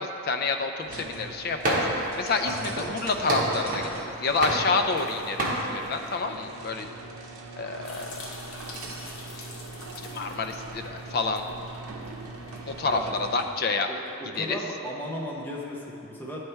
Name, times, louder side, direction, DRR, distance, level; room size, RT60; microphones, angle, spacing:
voice 1, 0.0-6.9 7.6-8.3 10.1-11.4 12.7-13.9 14.4-14.6, left 4 dB, 45° left, 6 dB, 0.3 m, -29 dB
sound 1, 0.8-13.6, right 3 dB, 85° right, 0.6 m, -42 dB
sound 2, 1.6-2.1 2.5-4.0 4.4-5.1 5.4-5.6, right 1 dB, 40° right, 0.9 m, -27 dB
sound 3, 7.8-13.1, left 3 dB, 80° left, 0.8 m, -46 dB
voice 2, 13.9-16.4, equal, 10° left, -4 dB, 0.7 m, -36 dB
9.3 x 3.3 x 4.4 m, 2.8 s
head